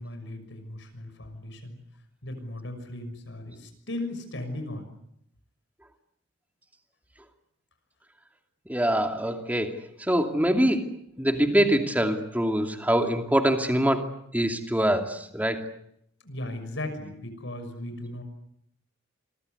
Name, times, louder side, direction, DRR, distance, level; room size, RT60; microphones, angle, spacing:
voice 1, 0.0-1.8 2.2-4.9 16.2-18.2, left 1 dB, 65° left, 8 dB, 6.3 m, -37 dB
voice 2, 8.7-10.9 11.2-14.0 14.3-15.6, right 1 dB, 10° right, 4 dB, 2.7 m, -24 dB
29.0 x 24.0 x 8.1 m, 0.73 s
head